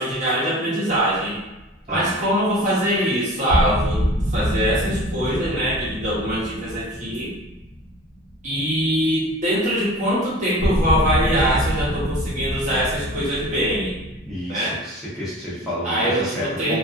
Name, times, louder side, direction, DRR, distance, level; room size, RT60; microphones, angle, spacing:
voice 1, 0.0-1.4 1.9-4.0 4.3-7.3 8.4-14.0 14.5-14.8 15.8-16.8, equal, 40° right, -8 dB, 0.9 m, -23 dB
sound 1, 1.0-1.9 3.5-8.6 8.8-9.1 10.6-14.3, equal, 55° left, 1.0 m, -26 dB
voice 2, 14.2-16.8, left 1 dB, ahead, -11 dB, 0.7 m, -30 dB
2.6 x 2.4 x 2.3 m, 0.98 s
head